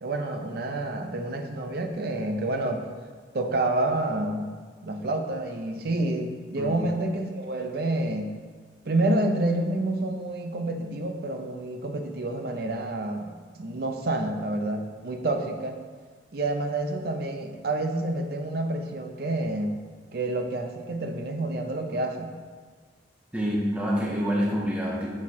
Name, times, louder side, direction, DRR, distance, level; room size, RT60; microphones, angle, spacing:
voice 1, 0.0-2.9 3.3-4.5 4.8-8.3 8.8-13.3 13.6-15.8 16.3-19.8 20.1-22.3, right 2 dB, 55° right, 5 dB, 0.5 m, -28 dB
voice 2, 23.3-25.1, equal, 5° right, -4 dB, 0.8 m, -26 dB
6.3 x 3.6 x 4.2 m, 1.5 s
head